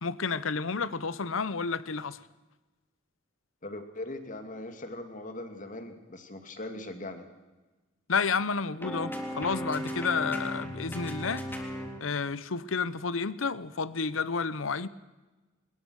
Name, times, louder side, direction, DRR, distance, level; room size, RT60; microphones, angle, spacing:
voice 1, 0.0-2.2 8.1-11.4 12.0-14.9, left 5 dB, 90° left, 17 dB, 0.8 m, -30 dB
voice 2, 3.6-7.2, left 1 dB, 40° left, 7 dB, 2.4 m, -40 dB
sound 1, 8.8-12.0, equal, 10° left, 3.5 m, -36 dB
21.5 x 21.0 x 6.5 m, 1.2 s
head